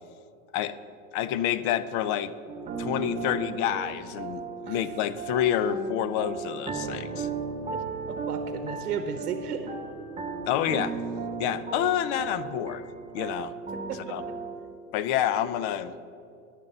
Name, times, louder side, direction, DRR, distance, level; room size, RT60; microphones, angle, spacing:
voice 1, 1.1-2.3 2.8-7.3 10.5-10.9 11.4-12.8 13.1-13.5 14.1-14.2 14.9-15.9, left 10 dB, 40° left, 15 dB, 0.4 m, -28 dB
sound 1, 2.5-14.5, right 4 dB, 15° right, 0.9 m, -36 dB
voice 2, 8.3-9.7 13.9-14.3, right 7 dB, 80° right, 8 dB, 0.9 m, -34 dB
10.5 x 7.0 x 6.7 m, 2.6 s
hypercardioid pair, 115°, 45 cm